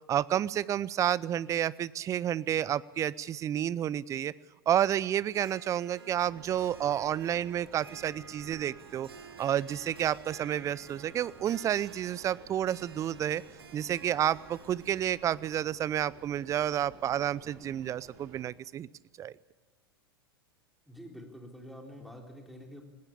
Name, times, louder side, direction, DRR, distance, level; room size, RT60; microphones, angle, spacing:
voice 1, 0.1-4.3 4.7-9.1 9.4-13.4 13.7-18.9 19.2-19.3, right 10 dB, 25° right, 21 dB, 0.6 m, -30 dB
Harp, 5.3-17.1, right 5 dB, 75° right, 1.8 m, -53 dB
sound 1, 6.1-18.4, right 4 dB, 45° right, 4.3 m, -55 dB
voice 2, 20.9-22.8, equal, ahead, 1 dB, 3.4 m, -47 dB
19.5 x 17.0 x 8.5 m, 1.2 s
figure-of-eight pair, 90°, 13 cm